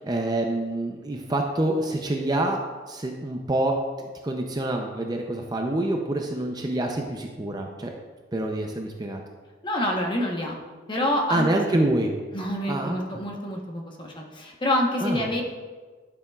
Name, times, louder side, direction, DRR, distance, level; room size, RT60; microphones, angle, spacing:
voice 1, 0.0-2.6 2.9-7.9 8.3-9.2 11.3-12.1 12.7-13.2 15.0-15.2, right 1 dB, 20° right, 2 dB, 0.5 m, -26 dB
voice 2, 9.6-10.5 10.9-11.5 12.3-15.4, left 1 dB, 25° left, 0 dB, 1.0 m, -27 dB
11.5 x 6.9 x 2.4 m, 1.4 s
head